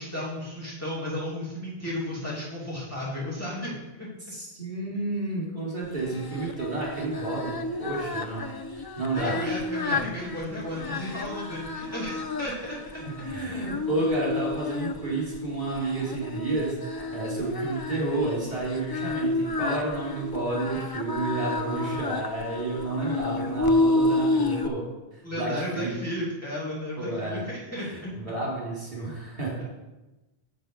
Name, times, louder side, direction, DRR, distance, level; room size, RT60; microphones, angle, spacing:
voice 1, 0.0-4.1 9.1-12.8 21.7-22.0 25.2-28.2 29.6-29.7, left 1 dB, 15° left, -7 dB, 2.5 m, -34 dB
voice 2, 4.3-7.5 7.8-8.5 8.7-9.6 9.9-10.0 10.8-11.1 12.5-12.7 13.0-24.8 25.1-25.9 27.0-27.4 27.8-29.6, right 2 dB, 45° right, -5 dB, 3.6 m, -31 dB
Singing, 5.9-24.7, left 2 dB, 35° left, 0.4 m, -30 dB
7.4 x 7.2 x 5.5 m, 1.1 s
omnidirectional pair, 1.1 m